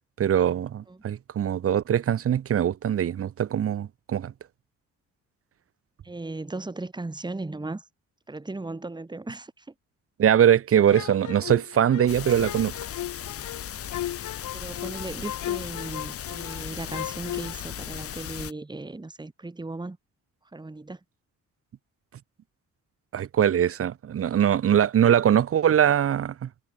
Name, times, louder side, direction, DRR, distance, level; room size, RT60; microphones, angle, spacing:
voice 1, 0.2-4.3 10.2-12.7 23.1-26.5, right 9 dB, 50° right, 1.0 m, -22 dB
voice 2, 6.0-7.9 8.3-9.7 14.5-20.0 20.5-21.0, right 2 dB, 15° right, 2.6 m, -37 dB
sound 1, 10.9-16.6 16.9-17.5, left 13 dB, 75° left, 1.9 m, -36 dB
sound 2, 12.1-18.5, left 10 dB, 50° left, 0.8 m, -37 dB
cardioid pair, 90°, 30 cm